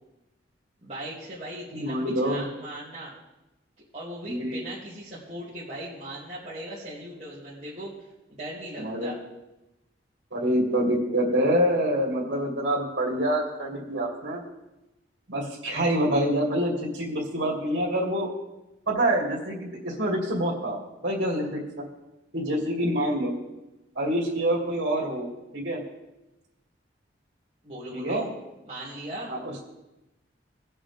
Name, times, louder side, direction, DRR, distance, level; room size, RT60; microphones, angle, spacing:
voice 1, 0.8-3.1 3.9-7.9 8.3-9.2 27.6-28.3 28.6-29.3, right 1 dB, 35° right, -10 dB, 2.5 m, -38 dB
voice 2, 1.7-2.5 4.3-4.7 8.8-9.1 10.3-14.4 15.3-18.3 18.9-21.8 22.3-23.3 24.0-25.3 25.5-25.8 27.9-28.2 29.3-29.6, right 1 dB, 75° right, -2 dB, 2.5 m, -26 dB
19.5 x 7.3 x 3.5 m, 0.98 s
head